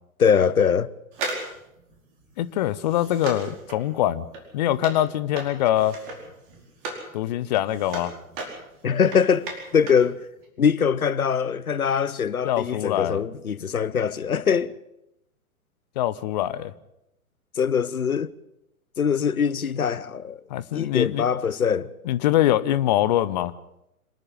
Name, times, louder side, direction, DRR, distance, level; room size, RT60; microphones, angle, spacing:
voice 1, 0.2-0.9 8.8-9.5 9.7-10.2 10.6-14.7 17.6-18.3 19.0-20.4 20.7-21.9, left 7 dB, 75° left, 0.9 m, -22 dB
sound 1, 1.1-7.1 7.4-10.1 10.4-10.5, right 3 dB, 35° right, 4.8 m, -36 dB
voice 2, 2.4-4.2 4.5-6.0 7.1-8.1 12.4-13.2 16.0-16.7 20.5-21.3 22.1-23.5, left 13 dB, 30° left, 0.7 m, -23 dB
26.5 x 10.0 x 9.9 m
figure-of-eight pair, 115°, 43 cm